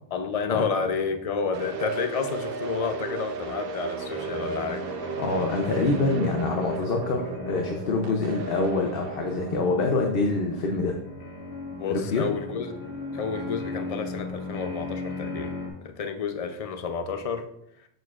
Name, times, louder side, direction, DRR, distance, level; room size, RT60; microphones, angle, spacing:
voice 1, 0.1-4.8 11.7-12.7 13.1-15.5 15.8-17.4, left 5 dB, 45° left, 7 dB, 0.6 m, -30 dB
sound 1, 1.5-11.6, right 5 dB, 70° right, 0.8 m, -35 dB
sound 2, 3.4-15.7, left 3 dB, 90° left, 1.6 m, -38 dB
voice 2, 5.2-11.0 11.9-12.3, left 3 dB, 70° left, 2 dB, 0.9 m, -26 dB
6.6 x 6.5 x 2.4 m, 0.76 s
omnidirectional pair, 1.0 m